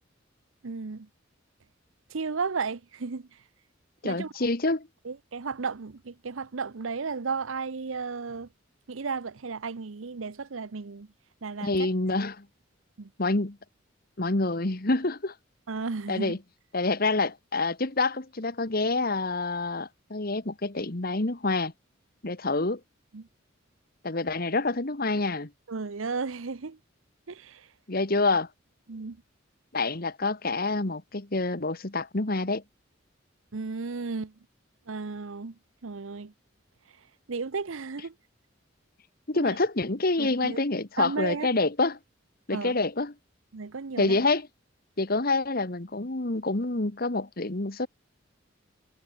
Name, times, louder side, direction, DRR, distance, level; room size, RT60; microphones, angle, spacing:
voice 1, 0.6-1.1 2.1-3.3 4.0-4.3 5.0-8.5 8.9-11.1 11.4-11.9 13.0-13.1 15.7-16.4 23.1-23.3 25.7-26.8 27.3-27.7 28.9-29.2 33.5-34.3 34.9-36.3 37.3-38.1 39.3-39.6 40.2-40.6 41.0-41.5 42.5-42.8 43.5-44.2, right 4 dB, 90° right, 0.8 m, -34 dB
voice 2, 4.0-4.9 11.6-12.5 13.2-13.6 14.2-15.3 16.1-16.4 16.7-21.7 22.2-22.8 24.0-25.5 27.9-28.5 29.7-32.6 39.3-42.0 42.5-43.1 44.0-44.5 45.0-47.9, left 3 dB, 50° left, 1.6 m, -27 dB
head